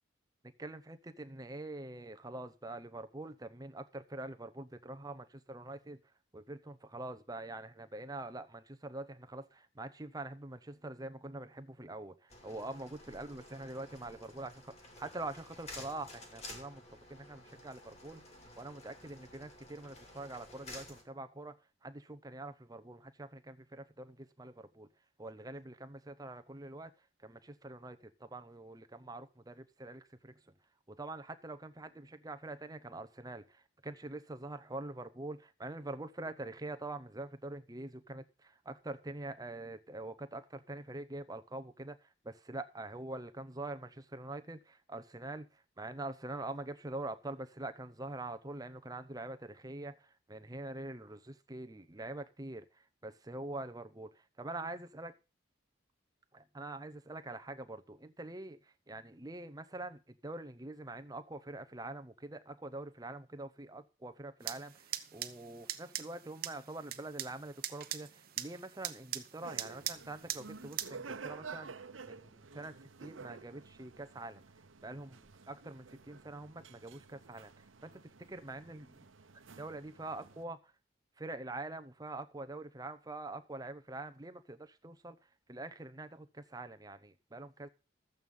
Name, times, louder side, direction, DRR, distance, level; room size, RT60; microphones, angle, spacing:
voice 1, 0.6-6.0 6.3-16.8 17.1-24.9 25.2-30.4 30.9-55.2 56.3-74.4 74.8-79.1 79.6-80.7 81.2-87.7, right 2 dB, 20° right, 0.8 m, -45 dB
sound 1, 12.3-21.0, left 2 dB, 35° left, 2.6 m, -52 dB
sound 2, 64.4-70.9, right 12 dB, 50° right, 0.9 m, -42 dB
sound 3, 69.4-80.4, right 5 dB, 85° right, 0.9 m, -51 dB
13.0 x 8.1 x 5.4 m
head